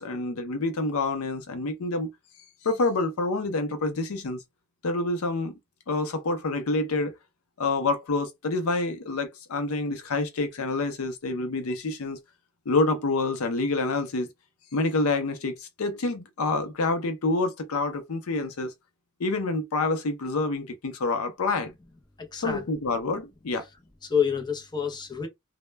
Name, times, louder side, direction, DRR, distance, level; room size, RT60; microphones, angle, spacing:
voice 1, 0.0-2.1 2.6-4.4 4.8-5.6 5.9-7.1 7.6-12.2 12.7-14.3 14.7-18.7 19.2-21.7 22.4-23.7, left 3 dB, 75° left, 0.5 m, -27 dB
voice 2, 22.2-22.6 24.0-25.3, left 7 dB, 20° left, 0.6 m, -28 dB
2.2 x 2.1 x 3.2 m
head